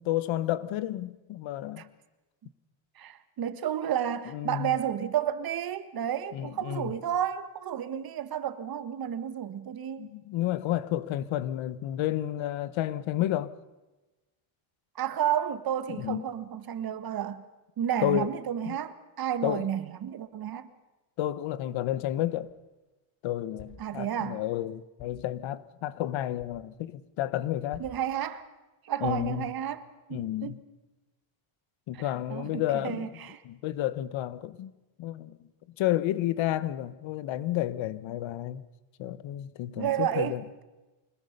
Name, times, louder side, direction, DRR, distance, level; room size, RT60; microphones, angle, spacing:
voice 1, 0.0-1.9 4.3-4.8 6.3-6.9 10.0-13.5 16.0-16.2 18.0-18.3 18.6-18.8 19.4-19.7 21.2-22.5 23.2-27.8 29.0-29.5 30.1-30.6 31.9-33.1 33.4-34.7 35.0-35.5 35.8-38.6 39.0-40.6, left 13 dB, 65° left, 1.3 m, -31 dB
voice 2, 3.0-10.1 15.0-17.4 17.8-20.7 23.8-24.4 27.8-28.5 28.8-30.5 31.9-33.4 39.8-40.4, right 10 dB, 45° right, 1.6 m, -31 dB
sound 1, 22.3-22.7 23.6-23.9 25.0-25.3 26.4-26.6 27.7-28.2 29.0-29.5, left 3 dB, 85° left, 7.4 m, -50 dB
25.5 x 20.5 x 6.7 m
cardioid pair, 130°, 50 cm